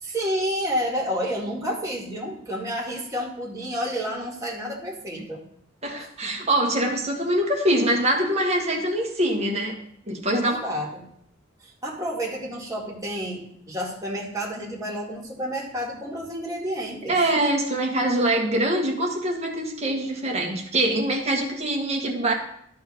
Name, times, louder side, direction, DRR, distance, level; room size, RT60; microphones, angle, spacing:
voice 1, 0.0-5.4 6.0-6.3 10.3-11.0 11.6-17.2, equal, 15° right, -3 dB, 2.0 m, -30 dB
voice 2, 5.8-9.8 10.1-10.6 17.1-22.3, right 1 dB, 35° right, 0 dB, 1.6 m, -24 dB
12.5 x 4.3 x 5.4 m, 0.69 s
head